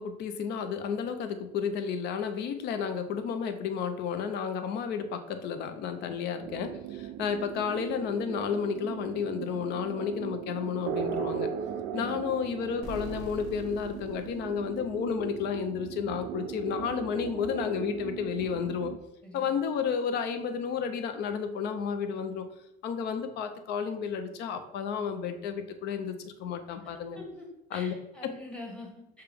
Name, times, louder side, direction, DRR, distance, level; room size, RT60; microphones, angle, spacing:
voice 1, 0.0-11.5 11.9-18.9 19.3-22.4 22.8-27.2 27.7-27.9, left 6 dB, 55° left, 8 dB, 0.6 m, -32 dB
sound 1, 6.4-19.0, right 9 dB, 55° right, 0.4 m, -38 dB
sound 2, 12.8-15.5, left 4 dB, 80° left, 1.0 m, -45 dB
voice 2, 27.1-29.2, left 2 dB, 5° left, -1 dB, 1.0 m, -45 dB
6.5 x 2.3 x 3.4 m, 0.90 s
cardioid pair, 145°, 21 cm